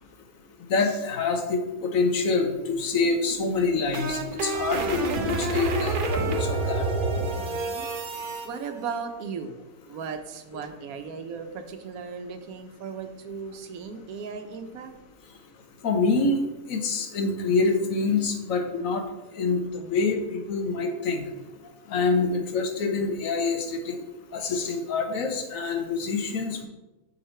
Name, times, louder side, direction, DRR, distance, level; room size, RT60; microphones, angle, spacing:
voice 1, 0.7-6.8 15.8-16.4 16.7-19.0 19.4-21.2 21.9-24.0 24.3-26.7, left 4 dB, 70° left, 5 dB, 1.2 m, -26 dB
sound 1, 3.5-8.5, right 2 dB, 50° right, 0.7 m, -28 dB
voice 2, 7.3-7.9 8.4-9.6 9.9-14.9, right 6 dB, 80° right, 7 dB, 1.2 m, -36 dB
6.5 x 4.6 x 4.3 m, 1.0 s
omnidirectional pair, 1.5 m